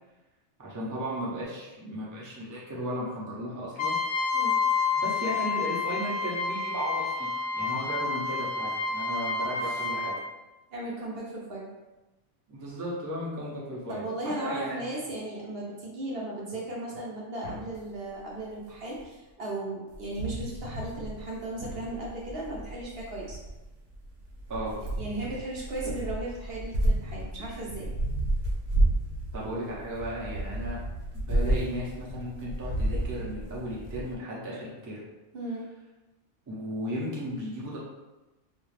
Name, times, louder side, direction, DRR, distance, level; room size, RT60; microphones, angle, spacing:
voice 1, 0.6-4.0 4.9-7.3 7.5-10.1 12.5-14.8 24.5-24.7 29.3-30.8 31.1-35.0 36.5-37.8, equal, 25° right, -6 dB, 0.5 m, -35 dB
Trumpet, 3.8-10.2, left 4 dB, 70° left, 0.9 m, -29 dB
voice 2, 10.7-11.7 13.9-23.4 24.7-27.9 35.3-35.6, right 2 dB, 60° right, -4 dB, 0.7 m, -36 dB
sound 1, 17.4-17.8 19.0-19.1 19.9-34.1, right 1 dB, 90° right, 1.0 m, -31 dB
2.5 x 2.3 x 3.2 m, 1.1 s
omnidirectional pair, 1.3 m